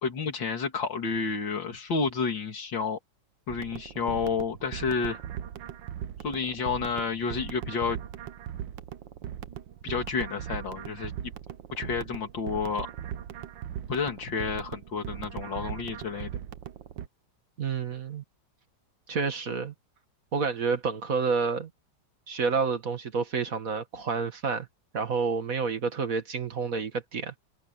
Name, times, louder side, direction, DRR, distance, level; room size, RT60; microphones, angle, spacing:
voice 1, 0.0-3.0 3.5-5.2 6.2-8.0 9.8-11.3 11.8-12.9 13.9-16.3, left 5 dB, 90° left, 3.0 m, -30 dB
sound 1, 3.5-17.1, right 10 dB, 85° right, 1.6 m, -39 dB
voice 2, 17.6-18.2 19.1-19.7 20.3-21.7 22.3-24.7 24.9-27.4, right 5 dB, 50° right, 2.1 m, -29 dB
omnidirectional pair, 2.0 m